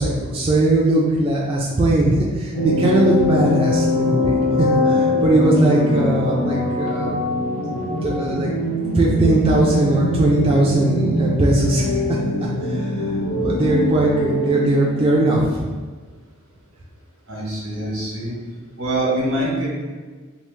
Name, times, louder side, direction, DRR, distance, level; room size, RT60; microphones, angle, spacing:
voice 1, 0.0-7.2 8.0-8.5 9.0-11.9 12.4-12.8 13.4-15.6, right 1 dB, 25° right, -4 dB, 0.3 m, -19 dB
sound 1, 2.5-15.6, left 1 dB, 90° left, 0.8 m, -22 dB
voice 2, 17.3-18.4 18.8-19.7, right 1 dB, 85° right, -4 dB, 1.0 m, -24 dB
3.0 x 2.0 x 3.2 m, 1.4 s
head